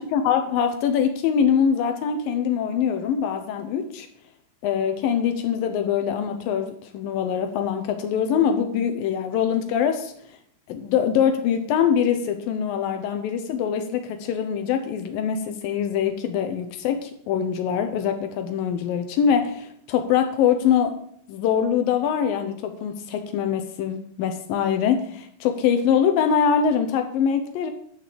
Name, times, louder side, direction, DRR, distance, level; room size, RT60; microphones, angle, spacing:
voice 1, 0.0-4.1 4.6-10.1 10.7-21.0 21.3-27.7, left 8 dB, 85° left, 6 dB, 2.0 m, -23 dB
10.5 x 5.9 x 7.6 m, 0.65 s
omnidirectional pair, 5.4 m